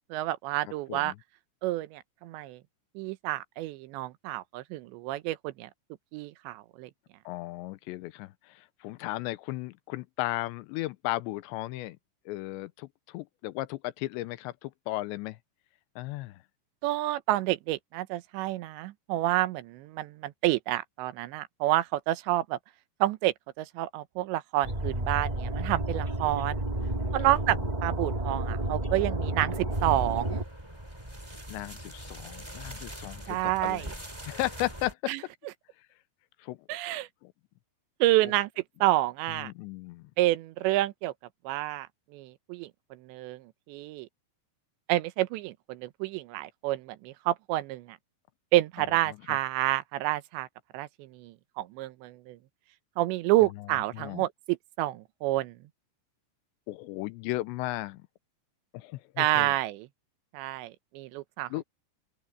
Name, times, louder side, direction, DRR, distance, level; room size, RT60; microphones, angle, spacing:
voice 1, 0.1-1.1 1.6-2.6 3.0-5.7 6.1-6.9 16.8-22.6 23.0-26.6 27.1-30.4 33.3-33.9 35.1-35.2 36.7-37.1 38.0-39.5 40.2-41.1 41.4-44.1 44.9-48.0 48.5-50.5 50.7-52.4 53.0-55.6 59.2-59.9 60.3-61.5, right 16 dB, 85° right, 3.1 m, -29 dB
voice 2, 7.3-12.0 12.3-15.4 16.0-16.4 26.8-27.2 27.5-27.6 31.5-33.9 34.3-35.1 36.4-36.6 37.2-37.3 39.3-40.1 48.8-49.4 53.6-53.7 53.9-54.2 56.7-58.1 58.7-59.5 61.5-61.6, left 18 dB, 85° left, 3.0 m, -35 dB
sound 1, 24.6-30.4, right 1 dB, 20° right, 1.0 m, -31 dB
sound 2, 29.7-34.9, right 1 dB, 5° right, 4.8 m, -43 dB
open air
omnidirectional pair, 5.0 m